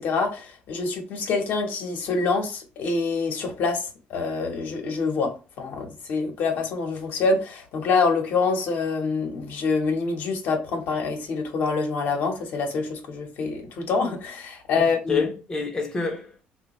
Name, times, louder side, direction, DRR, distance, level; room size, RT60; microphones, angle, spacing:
voice 1, 0.0-5.3 5.6-15.3, left 4 dB, 60° left, 0.9 m, -26 dB
voice 2, 14.8-16.4, left 4 dB, 20° left, 0.6 m, -28 dB
3.3 x 2.2 x 3.0 m
cardioid pair, 125°, 4 cm